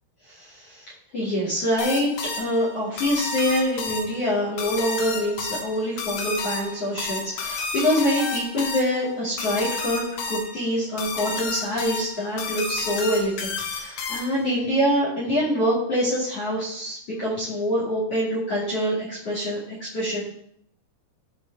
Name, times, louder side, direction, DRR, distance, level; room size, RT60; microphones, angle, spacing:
voice 1, 0.3-0.8 1.1-2.1 2.4-20.2, equal, 40° left, -7 dB, 2.5 m, -25 dB
sound 1, 1.8-14.5, left 4 dB, 75° left, 2.2 m, -31 dB
13.5 x 5.3 x 3.5 m, 0.68 s
omnidirectional pair, 5.7 m